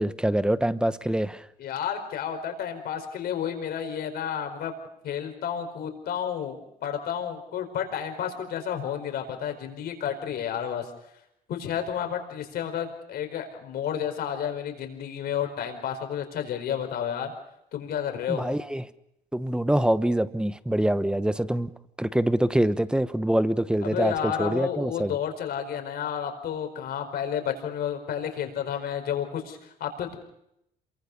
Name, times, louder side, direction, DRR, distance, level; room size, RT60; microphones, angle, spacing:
voice 1, 0.0-1.5 18.3-18.9 19.3-21.7 22.0-25.2, right 1 dB, 5° right, 14 dB, 1.0 m, -25 dB
voice 2, 1.6-4.7 5.0-10.9 11.5-17.3 17.7-18.5 23.8-30.1, left 9 dB, 65° left, 6 dB, 4.9 m, -31 dB
27.5 x 23.5 x 5.4 m, 0.80 s
cardioid pair, 110°, 17 cm